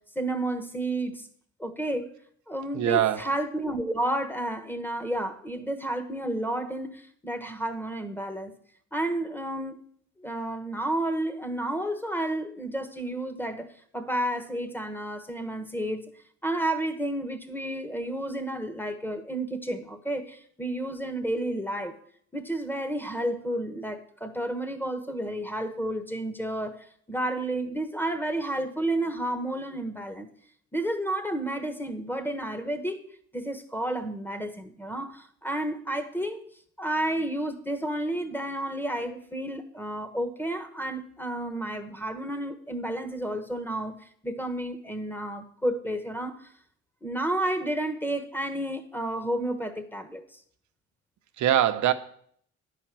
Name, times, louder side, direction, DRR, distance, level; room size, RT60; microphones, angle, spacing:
voice 1, 0.1-1.3 1.6-2.1 2.5-8.5 8.9-9.8 10.2-13.7 13.9-16.1 16.4-22.0 22.3-26.8 27.1-30.3 30.7-33.0 33.3-36.4 36.8-44.0 44.2-46.3 47.0-50.2, right 1 dB, 5° left, 9 dB, 1.2 m, -31 dB
voice 2, 2.7-3.3 51.4-51.9, right 11 dB, 75° right, 10 dB, 0.8 m, -22 dB
10.5 x 5.0 x 7.5 m, 0.62 s
cardioid pair, 90°, 30 cm